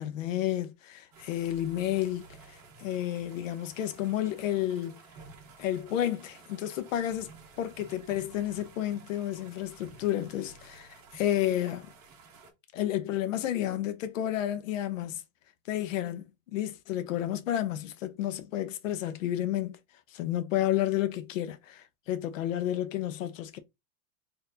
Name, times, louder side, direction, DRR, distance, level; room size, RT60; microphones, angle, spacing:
voice 1, 0.0-5.0 5.6-7.3 7.6-11.9 12.7-15.2 15.7-19.8 20.1-23.6, left 12 dB, 70° left, 0.7 m, -31 dB
sound 1, 1.1-12.5, right 4 dB, 30° right, 1.0 m, -53 dB
4.2 x 2.7 x 2.7 m
supercardioid pair, 180°, 40 cm